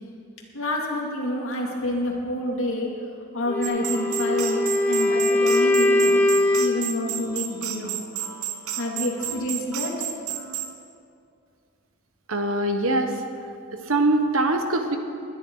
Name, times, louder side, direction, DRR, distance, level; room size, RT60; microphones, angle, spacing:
voice 1, 0.5-2.9 3.3-6.2 6.6-8.0 8.8-9.9, left 1 dB, 65° left, -2 dB, 2.6 m, -28 dB
Wind instrument woodwind instrument, 3.5-7.0, left 1 dB, 10° left, 0.9 m, -21 dB
sound 1, 3.6-10.7, right 9 dB, 85° right, 1.0 m, -32 dB
voice 2, 12.3-13.2 13.7-15.0, right 2 dB, 70° right, 6 dB, 1.3 m, -23 dB
20.0 x 10.5 x 4.7 m, 2.5 s
head